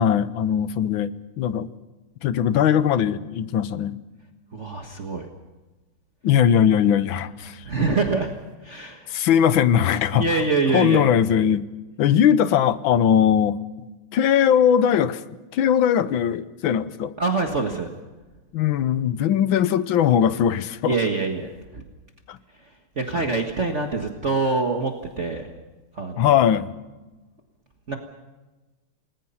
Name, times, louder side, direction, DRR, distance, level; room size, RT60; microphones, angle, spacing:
voice 1, 0.0-1.7 2.2-4.0 6.2-7.6 9.1-10.3 10.7-11.7 12.0-13.6 14.1-15.2 15.5-17.1 18.5-21.0 22.3-22.4 23.1-23.2 26.2-26.7, left 9 dB, 70° left, 14 dB, 1.6 m, -20 dB
voice 2, 4.5-5.3 7.7-8.3 8.6-9.2 10.1-11.1 17.2-17.9 20.8-21.8 23.0-25.5 25.9-26.3 27.9-28.0, right 3 dB, 35° right, 3 dB, 1.7 m, -25 dB
28.5 x 20.0 x 5.7 m, 1.2 s
omnidirectional pair, 2.4 m